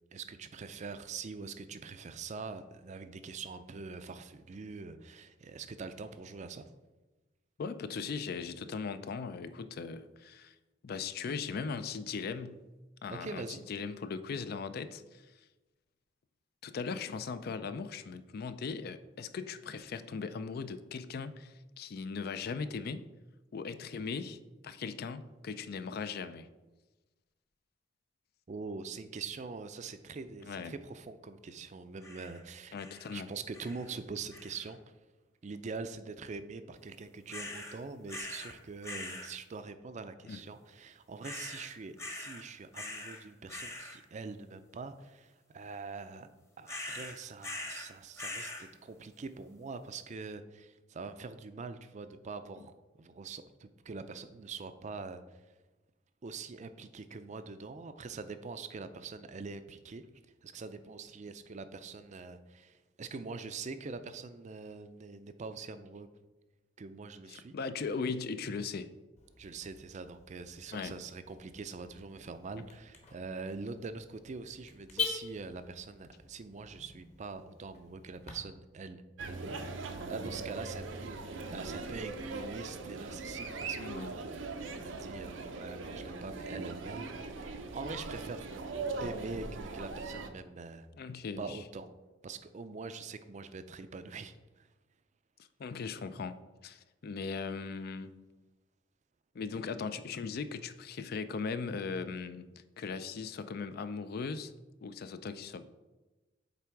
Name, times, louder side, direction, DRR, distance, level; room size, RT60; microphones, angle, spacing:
voice 1, 0.1-6.7 13.1-13.6 28.5-32.7 33.1-34.8 35.4-46.3 46.6-52.7 53.0-55.4 56.2-60.1 60.4-66.1 66.8-67.6 69.4-81.2 81.5-84.5 84.8-88.5 89.0-90.9 91.4-91.9 92.2-94.7, right 4 dB, 40° right, 11 dB, 0.4 m, -44 dB
voice 2, 7.6-10.5 10.8-12.7 13.0-15.3 16.6-23.1 23.5-26.5 30.4-30.7 32.7-33.3 40.3-40.4 52.6-52.7 67.3-68.9 70.7-71.0 83.8-84.1 90.9-91.6 95.6-98.1 99.3-102.5 102.8-104.5 104.8-105.7, left 5 dB, 55° left, 12 dB, 0.4 m, -39 dB
sound 1, 32.0-32.4 32.8-33.2 33.5-33.9 34.3-34.7 37.3-37.8 38.1-38.5 38.8-39.3 41.2-41.7 42.0-42.4 42.7-43.2 43.5-44.0 46.7-47.9 48.2-48.7, left 1 dB, 15° left, 0.9 m, -42 dB
Car / Alarm, 69.2-78.3, left 6 dB, 40° left, 1.2 m, -44 dB
sound 2, 79.2-90.3, right 3 dB, 85° right, 0.7 m, -40 dB
8.2 x 3.4 x 4.6 m, 1.1 s
head